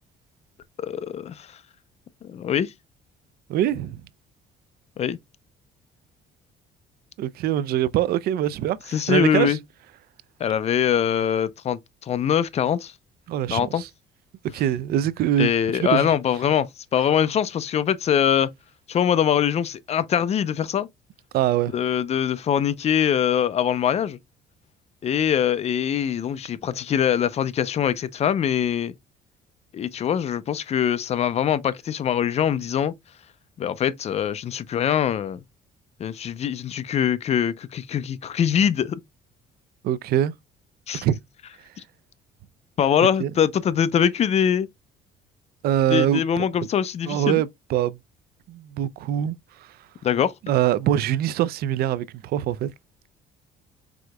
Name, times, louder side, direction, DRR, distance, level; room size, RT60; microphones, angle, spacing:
voice 1, 0.8-1.5 2.2-2.7 5.0-5.2 8.9-9.6 10.4-12.9 13.5-13.8 15.4-18.5 18.9-20.9 21.7-24.2 25.0-28.9 29.7-32.9 33.6-35.4 36.0-39.0 40.9-41.0 42.8-44.7 45.9-47.4 50.0-50.3, left 9 dB, 40° left, 0.5 m, -23 dB
voice 2, 3.5-4.0 7.2-9.6 13.3-13.9 14.5-16.1 21.3-21.7 39.8-40.3 41.0-41.2 43.0-43.3 45.6-46.4 47.1-48.0 48.5-49.4 50.4-52.7, right 11 dB, 65° right, 0.4 m, -23 dB
4.8 x 3.7 x 2.2 m
cardioid pair, 110°, 17 cm